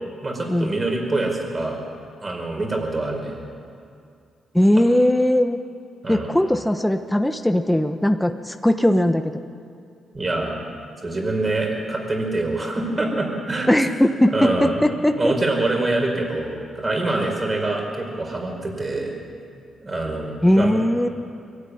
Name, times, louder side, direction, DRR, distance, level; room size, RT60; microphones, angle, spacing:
voice 1, 0.2-1.8 2.2-3.4 6.0-6.3 10.1-10.5 11.0-13.9 14.3-14.8 15.2-19.1 19.8-20.7, right 2 dB, 30° right, 1 dB, 5.1 m, -25 dB
voice 2, 4.5-5.6 6.1-9.3 13.7-15.3 20.4-21.1, left 1 dB, 5° left, 6 dB, 1.0 m, -19 dB
23.0 x 13.0 x 9.8 m, 2.4 s
cardioid pair, 90°, 0 cm